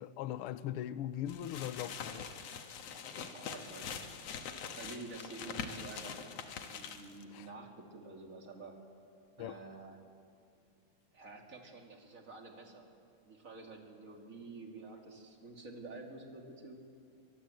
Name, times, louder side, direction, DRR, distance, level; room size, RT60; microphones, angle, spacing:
voice 1, 0.0-2.3 3.2-3.3 7.3-7.5 9.4-9.6, left 11 dB, 75° left, 1.3 m, -40 dB
sound 1, 1.3-7.2, left 6 dB, 60° left, 2.3 m, -44 dB
voice 2, 3.3-4.1 4.8-6.3 6.7-8.8 9.4-10.0 11.1-12.9 13.2-16.8, right 3 dB, 25° right, 2.7 m, -49 dB
25.0 x 22.5 x 7.9 m
omnidirectional pair, 3.4 m